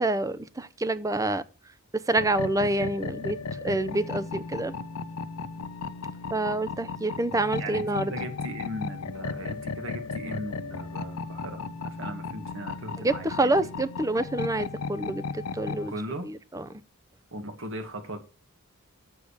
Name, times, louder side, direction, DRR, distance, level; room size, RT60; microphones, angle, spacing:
voice 1, 0.0-1.4 2.1-3.4 3.6-4.7 6.3-8.1 13.0-15.9 16.2-16.6, right 2 dB, 15° right, 0.6 m, -27 dB
sound 1, 2.2-15.9, left 4 dB, 85° left, 0.7 m, -35 dB
voice 2, 7.6-13.5 15.9-16.3 17.3-18.2, right 1 dB, 60° right, 2.0 m, -38 dB
8.4 x 6.8 x 6.5 m
head